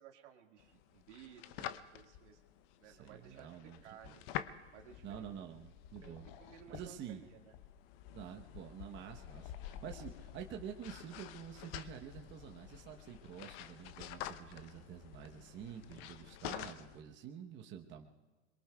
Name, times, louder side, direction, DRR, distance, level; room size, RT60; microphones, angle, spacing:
voice 1, 0.0-2.4 2.8-3.5 3.8-4.2 4.7-5.3 6.0-7.5, right 8 dB, 80° right, 3 dB, 1.9 m, -57 dB
sound 1, 0.6-17.0, left 11 dB, 55° left, 0.8 m, -49 dB
voice 2, 2.8-4.2 5.0-6.2 6.7-7.2 8.1-18.1, right 9 dB, 30° right, 2 dB, 1.0 m, -48 dB
28.0 x 22.5 x 2.3 m, 1.2 s
hypercardioid pair, 120°, 35 cm